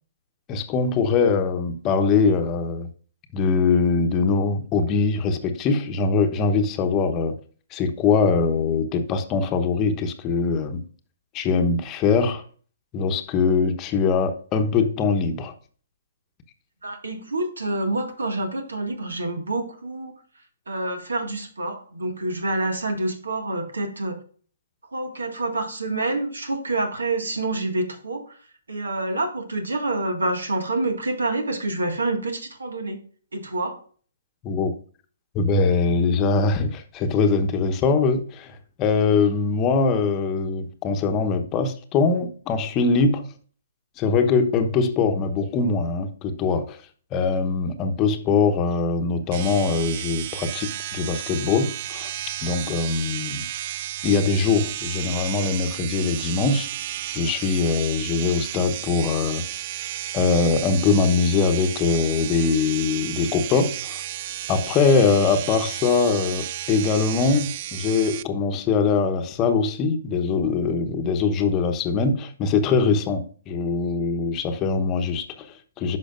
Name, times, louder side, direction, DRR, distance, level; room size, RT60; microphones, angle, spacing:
voice 1, 0.5-2.9 3.3-7.3 7.7-10.8 11.3-12.4 12.9-15.5 34.4-34.7 35.3-43.3 44.0-46.8 47.1-52.1 52.4-53.5 54.0-56.7 57.1-59.6 60.1-64.0 64.5-76.0, left 4 dB, 25° left, 1.0 m, -22 dB
voice 2, 16.8-20.2 20.7-24.2 24.9-28.4 28.7-33.0 33.3-33.8, right 2 dB, 75° right, 1.8 m, -27 dB
sound 1, 49.3-68.2, right 13 dB, 40° right, 0.3 m, -33 dB
10.0 x 6.2 x 2.5 m
figure-of-eight pair, 125°, 0 cm